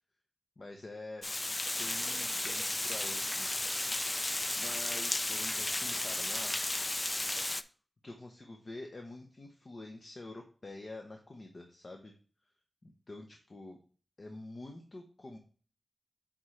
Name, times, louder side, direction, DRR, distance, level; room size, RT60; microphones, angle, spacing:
voice 1, 0.6-1.3 1.8-3.5 4.5-6.6 8.0-12.2 12.8-13.8 14.2-15.4, left 2 dB, 45° left, 3 dB, 0.7 m, -47 dB
Water, 1.2-7.6, left 1 dB, 20° left, 0.3 m, -34 dB
8.6 x 3.7 x 3.2 m, 0.41 s
wide cardioid pair, 115°, 0 cm